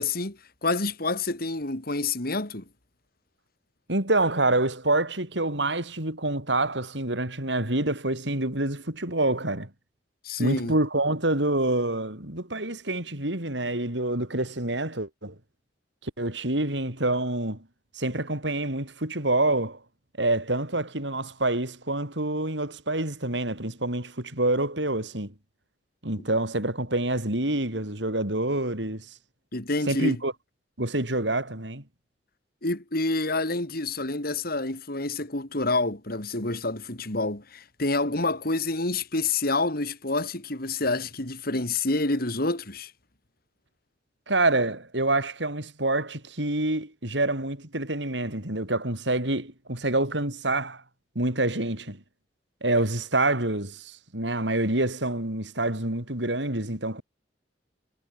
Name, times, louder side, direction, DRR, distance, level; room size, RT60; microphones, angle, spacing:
voice 1, 0.0-2.6 10.2-10.8 29.5-30.2 32.6-42.9, left 2 dB, 55° left, 3.8 m, -28 dB
voice 2, 3.9-9.7 10.4-15.3 16.0-17.6 17.9-19.8 20.2-25.3 26.0-29.1 29.9-30.3 30.8-31.8 44.3-50.8 51.1-52.0 52.6-57.0, right 2 dB, 80° right, 6.4 m, -27 dB
head